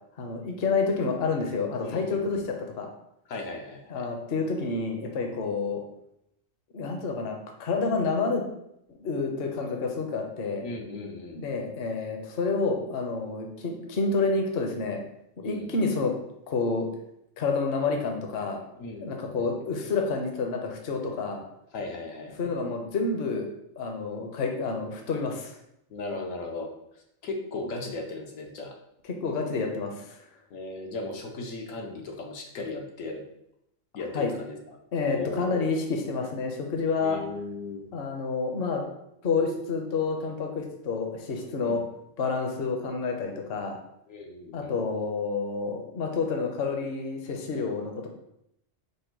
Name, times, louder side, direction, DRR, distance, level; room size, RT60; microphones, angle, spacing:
voice 1, 0.2-2.9 3.9-5.8 6.7-8.4 9.0-10.7 11.4-15.0 15.4-16.1 16.5-16.9 17.4-18.6 19.0-21.5 22.4-23.5 23.8-25.5 29.1-30.2 34.1-34.3 34.9-37.2 37.9-38.8 39.2-41.8 42.2-43.8 44.5-48.1, left 4 dB, 55° left, 3 dB, 0.8 m, -29 dB
voice 2, 1.8-2.4 3.3-4.1 10.6-11.4 15.4-15.7 18.8-19.5 21.7-22.5 25.9-26.7 27.2-28.7 30.5-33.2 33.9-34.6 35.1-35.8 37.0-37.9 41.6-41.9 44.1-44.8, left 2 dB, 80° left, 1 dB, 1.2 m, -37 dB
5.2 x 2.2 x 4.5 m, 0.79 s
omnidirectional pair, 1.3 m